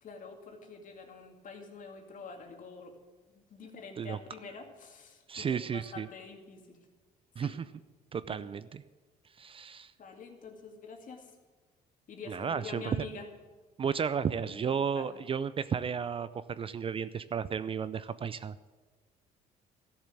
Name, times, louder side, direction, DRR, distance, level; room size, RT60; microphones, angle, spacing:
voice 1, 0.0-3.0 3.3-6.9 7.4-7.6 8.3-8.4 10.0-11.4 12.1-13.3 14.3-15.3, left 4 dB, 50° left, 4 dB, 2.3 m, -47 dB
voice 2, 5.3-6.1 7.4-7.7 8.1-8.8 9.4-9.9 12.3-13.0 13.8-18.7, right 7 dB, 30° right, 15 dB, 0.4 m, -33 dB
13.0 x 7.3 x 9.0 m, 1.3 s
cardioid pair, 110°, 17 cm